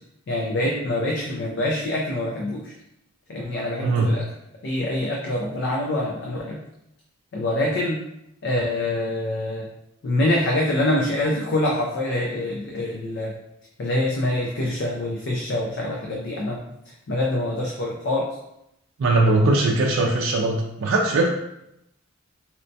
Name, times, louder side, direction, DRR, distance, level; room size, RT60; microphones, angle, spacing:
voice 1, 0.3-2.7 3.3-4.3 4.6-6.6 7.3-8.0 8.4-9.7 10.0-13.3 13.8-16.6 16.9-18.4 19.4-19.6, left 1 dB, 55° left, -2 dB, 0.4 m, -25 dB
voice 2, 19.0-21.3, right 2 dB, 70° right, -1 dB, 0.4 m, -20 dB
4.2 x 2.1 x 2.6 m, 0.83 s
head